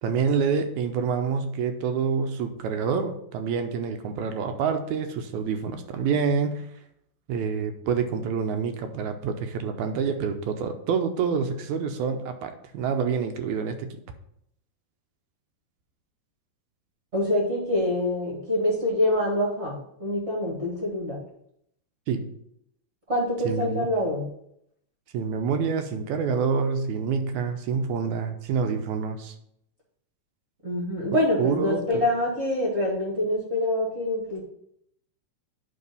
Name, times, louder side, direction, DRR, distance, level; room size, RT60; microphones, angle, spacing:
voice 1, 0.0-6.7 7.3-14.0 22.1-22.3 23.4-23.9 25.1-29.4 31.4-32.1, right 6 dB, 75° right, 7 dB, 1.9 m, -27 dB
voice 2, 17.1-21.2 23.1-24.3 30.6-34.4, left 1 dB, 30° right, -4 dB, 1.2 m, -25 dB
9.6 x 3.3 x 5.3 m, 0.73 s
omnidirectional pair, 3.7 m